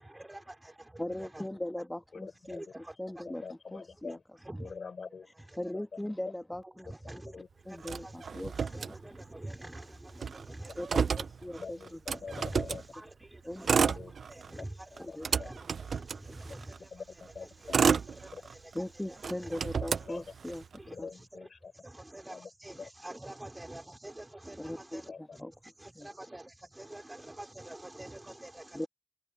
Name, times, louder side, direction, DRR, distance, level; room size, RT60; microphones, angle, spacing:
voice 1, 0.0-1.5 2.4-3.2 4.4-4.7 5.4-5.6 6.6-7.4 7.7-11.3 11.6-11.7 12.3-12.6 12.9-14.0 14.3-16.9 17.4-19.6 20.8-21.5 21.8-25.4 25.8-28.9, right 1 dB, 20° right, 3.9 m, -47 dB
voice 2, 1.0-3.4 3.7-4.2 5.6-6.9 7.7-8.6 10.8-11.1 11.4-12.0 13.5-13.8 15.0-15.3 18.7-20.6 21.0-21.1 24.6-25.0 25.4-25.5 26.0-26.1 28.7-28.9, left 1 dB, 15° left, 1.2 m, -39 dB
voice 3, 2.1-2.6 3.3-4.2 4.6-5.3 5.7-5.9 7.3-7.5 11.5-12.8 13.8-14.1 14.9-15.5 16.9-17.8 18.3-18.4 19.7-20.3 20.9-21.7 22.3-22.5 22.8-22.9 25.1-25.4, left 5 dB, 70° left, 3.6 m, -44 dB
Motor vehicle (road), 7.8-9.4 9.7-9.8 10.1-12.9 13.5-14.6 15.0-16.8 17.4-18.8 19.2-20.8, right 6 dB, 80° right, 0.3 m, -31 dB
cardioid pair, 45°, 0 cm